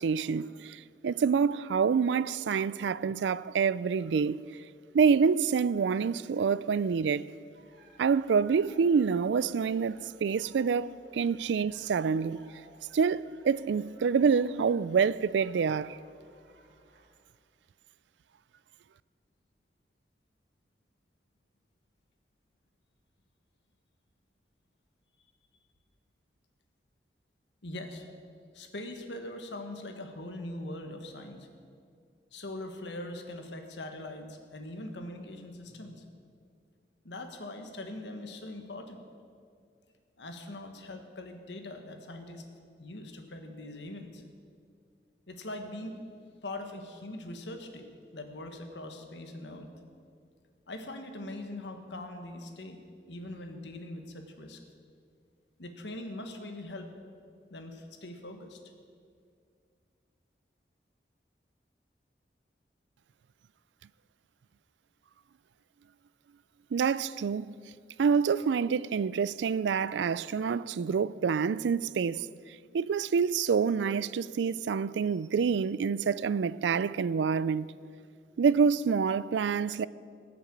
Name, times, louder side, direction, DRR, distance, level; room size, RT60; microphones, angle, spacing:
voice 1, 0.0-4.4 4.9-7.2 8.0-12.4 12.9-16.0 66.7-67.5 68.0-72.3 72.7-77.7 78.4-79.9, right 6 dB, 90° right, 0.4 m, -27 dB
sound 1, 7.5-17.2, right 1 dB, 65° right, 3.9 m, -59 dB
voice 2, 27.6-28.1 28.5-31.5 32.3-36.0 37.0-39.0 40.2-42.4 42.8-44.2 45.3-46.0 46.4-47.9 48.1-49.7 50.7-52.8 53.1-54.6 55.6-56.9 57.5-58.6, left 1 dB, 90° left, 1.5 m, -42 dB
19.0 x 6.9 x 7.4 m
head